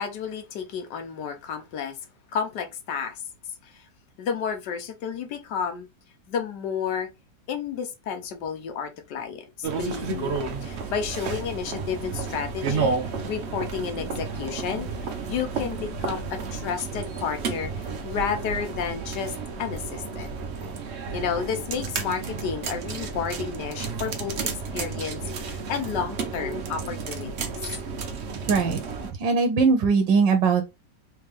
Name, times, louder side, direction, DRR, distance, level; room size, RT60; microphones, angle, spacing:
voice 1, 0.0-2.0 2.3-3.2 3.6-3.9 4.2-5.9 6.3-7.1 7.5-19.3 19.6-20.3 21.1-24.4 24.7-27.6, left 7 dB, 70° left, 1.3 m, -31 dB
sound 1, 9.6-29.1, right 4 dB, 60° right, 0.7 m, -32 dB
voice 2, 28.5-28.8 29.2-30.6, right 5 dB, 80° right, 1.4 m, -20 dB
3.4 x 3.3 x 3.3 m
omnidirectional pair, 2.0 m